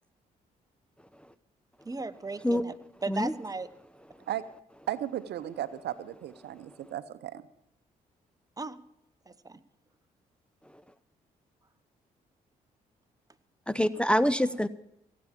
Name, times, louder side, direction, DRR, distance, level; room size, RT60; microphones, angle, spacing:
voice 1, 1.8-2.7 3.0-3.7 8.6-8.8 9.3-9.6, right 3 dB, 20° right, 12 dB, 1.0 m, -36 dB
voice 2, 4.9-7.4, right 11 dB, 70° right, 14 dB, 0.8 m, -35 dB
voice 3, 13.7-14.7, equal, 5° left, 14 dB, 0.6 m, -25 dB
16.5 x 8.6 x 7.3 m, 0.80 s
hypercardioid pair, 50°, 18 cm